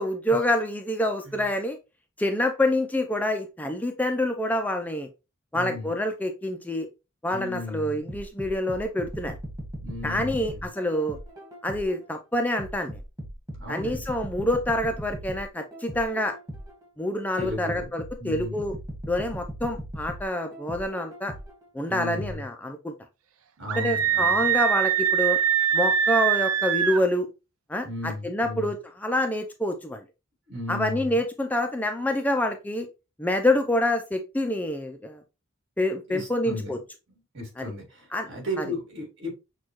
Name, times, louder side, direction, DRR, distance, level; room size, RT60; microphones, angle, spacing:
voice 1, 0.0-1.8 2.2-5.1 5.5-6.9 7.2-9.4 10.0-11.2 11.6-13.0 13.7-16.3 17.0-18.8 19.1-21.3 21.7-22.9 23.8-25.4 25.7-27.3 27.7-30.0 30.7-32.9 33.2-35.2 35.8-36.8 37.6-37.7 38.1-38.3 38.6-38.7, left 1 dB, 10° left, 5 dB, 0.4 m, -27 dB
voice 2, 5.5-5.9 7.3-8.0 9.8-10.6 13.6-14.0 17.4-17.9 18.2-18.6 21.9-22.4 23.6-24.5 27.8-28.7 30.5-31.2 36.1-36.7 37.1-39.3, left 1 dB, 60° right, 0 dB, 2.2 m, -35 dB
sound 1, 8.1-12.0 12.6-16.8 17.4-21.6 22.2-22.3, equal, 15° right, 1.4 m, -38 dB
Screaming, 23.7-27.0, right 9 dB, 80° right, 0.5 m, -23 dB
6.2 x 2.3 x 3.0 m, 0.27 s
head